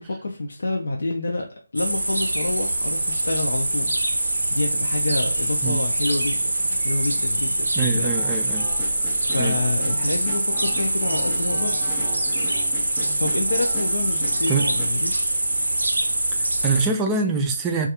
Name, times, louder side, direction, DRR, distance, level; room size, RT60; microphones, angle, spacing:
voice 1, 0.0-8.2 9.1-11.8 12.6-12.7 13.2-15.3, left 2 dB, 65° left, 0.4 m, -28 dB
sound 1, 1.8-16.9, right 1 dB, 85° right, 0.5 m, -24 dB
voice 2, 7.7-8.7 9.4-9.6 14.5-14.7 16.4-17.9, right 4 dB, 15° right, 0.3 m, -24 dB
sound 2, 8.1-14.9, left 1 dB, 5° left, 0.7 m, -38 dB
2.3 x 2.2 x 2.8 m
figure-of-eight pair, 155°, 0 cm